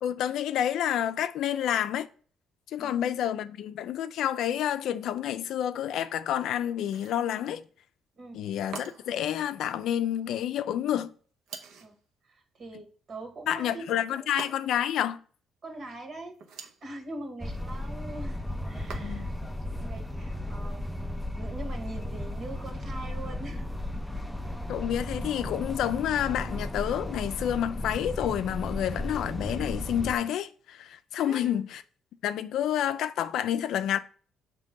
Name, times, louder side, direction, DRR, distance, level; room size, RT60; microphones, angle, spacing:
voice 1, 0.0-2.1 2.7-7.6 8.3-11.1 13.5-15.2 19.0-19.3 24.7-31.8 32.2-34.0, left 10 dB, 70° left, 0.4 m, -29 dB
voice 2, 2.8-3.2 8.2-8.4 11.8-12.0 12.2-14.3 15.6-16.4 16.8-19.3 19.7-23.6 31.2-31.6, right 2 dB, 45° right, 1.5 m, -43 dB
sound 1, 6.8-7.3 8.7-9.2 11.5-12.0 14.4-14.9 16.3-16.9 18.9-19.4, right 5 dB, 75° right, 0.8 m, -44 dB
sound 2, 17.4-30.2, left 1 dB, 5° left, 0.4 m, -35 dB
6.3 x 3.0 x 5.2 m
cardioid pair, 125°, 0 cm